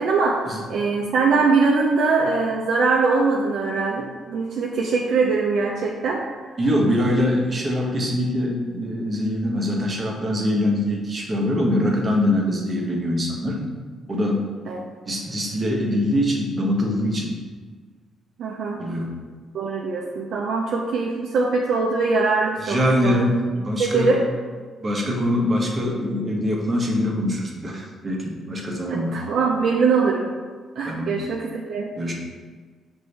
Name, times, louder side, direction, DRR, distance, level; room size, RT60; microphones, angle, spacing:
voice 1, 0.0-6.2 14.7-14.8 18.4-18.8 19.5-23.3 23.8-24.3 28.8-30.3 30.8-31.9, right 4 dB, 70° right, -2 dB, 0.4 m, -22 dB
voice 2, 6.6-13.6 14.1-14.4 15.1-17.3 18.8-19.1 22.6-23.3 23.6-24.1 24.8-29.2 30.8-31.1 32.0-32.1, left 1 dB, 30° right, -1 dB, 0.9 m, -23 dB
5.4 x 2.6 x 3.2 m, 1.5 s
cardioid pair, 90°, 0 cm